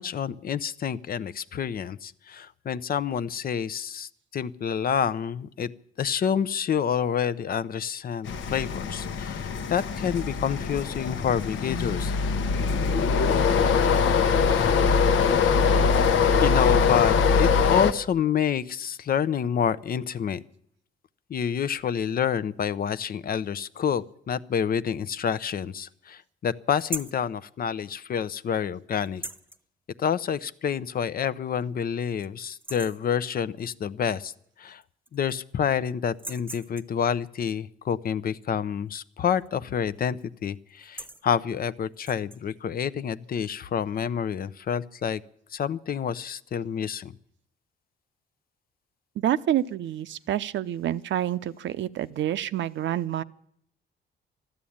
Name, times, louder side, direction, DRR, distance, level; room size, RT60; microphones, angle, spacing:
voice 1, 0.0-5.7 6.0-12.2 16.4-20.4 21.3-29.2 30.0-34.3 34.6-34.8 35.1-45.2 45.5-47.1, left 8 dB, 50° left, 16 dB, 0.7 m, -28 dB
sound 1, 8.3-17.9, left 5 dB, 75° left, 1.0 m, -22 dB
sound 2, 26.8-27.2 29.1-29.6 31.0-31.1 31.5-31.6 32.0-32.3 32.5-33.1 34.4-34.5 34.8-35.5 36.1-37.0 39.4-39.7 40.0-40.2 40.7-41.3 41.9-42.4, right 2 dB, 10° right, 1.0 m, -39 dB
voice 2, 49.2-53.2, right 11 dB, 70° right, 14 dB, 0.7 m, -28 dB
13.0 x 12.5 x 8.7 m, 0.69 s
cardioid pair, 90°, 20 cm